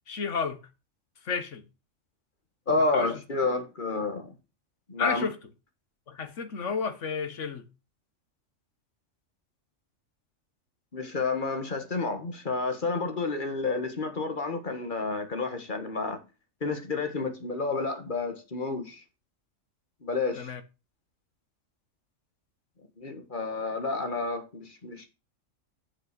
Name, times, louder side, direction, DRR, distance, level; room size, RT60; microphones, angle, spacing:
voice 1, 0.1-0.6 1.2-1.6 2.9-3.1 5.0-5.4 6.1-7.7 20.4-20.6, left 5 dB, 65° left, 1.5 m, -31 dB
voice 2, 2.7-4.3 4.9-5.2 10.9-16.2 16.6-19.0 20.0-20.5 23.0-25.1, left 3 dB, 40° left, 1.8 m, -30 dB
7.4 x 6.4 x 6.7 m
omnidirectional pair, 1.4 m